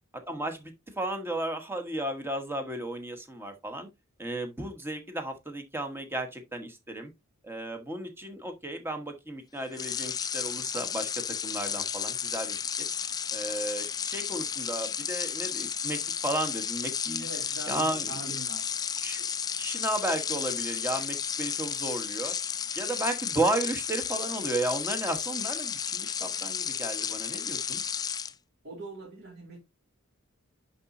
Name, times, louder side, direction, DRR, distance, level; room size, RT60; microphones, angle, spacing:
voice 1, 0.3-3.9 4.2-7.1 7.4-11.1 11.4-12.9 13.3-17.3 17.7-18.1 19.0-19.3 19.6-22.4 22.7-27.8, right 1 dB, 10° right, 1.2 m, -34 dB
sound 1, 9.7-28.3, left 7 dB, 20° left, 0.3 m, -33 dB
voice 2, 17.2-18.7 28.6-29.6, right 2 dB, 50° right, 2.4 m, -42 dB
10.5 x 4.1 x 2.7 m
head